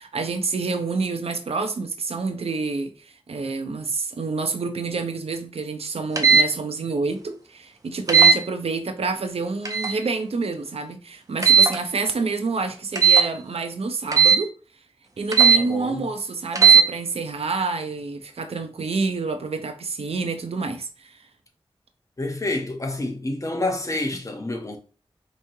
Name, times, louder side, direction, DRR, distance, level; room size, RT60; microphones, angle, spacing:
voice 1, 0.0-14.5 15.2-21.2, right 4 dB, 85° right, 0.6 m, -28 dB
sound 1, 6.2-6.5 8.1-8.4 9.6-10.0 11.4-11.8 13.0-13.3 14.1-14.4 15.3-15.6 16.5-16.8, right 6 dB, 35° right, 0.7 m, -15 dB
voice 2, 15.5-16.0 22.2-24.8, left 2 dB, 35° left, 0.9 m, -28 dB
4.5 x 3.1 x 2.7 m
wide cardioid pair, 90°, 10 cm